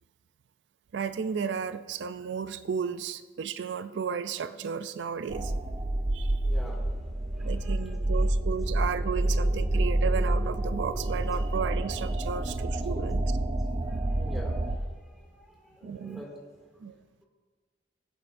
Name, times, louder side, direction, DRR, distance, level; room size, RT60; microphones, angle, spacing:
voice 1, 0.9-5.6 6.1-6.4 7.4-13.2 15.8-16.2 16.8-17.0, right 6 dB, 90° right, 13 dB, 0.4 m, -34 dB
sound 1, 5.3-14.8, right 1 dB, 30° right, 0.5 m, -28 dB
voice 2, 6.4-8.7 9.2-9.3 9.9-10.0 12.9-13.1 13.8-16.7, equal, ahead, -2 dB, 2.2 m, -47 dB
22.0 x 7.9 x 2.6 m, 1.4 s
head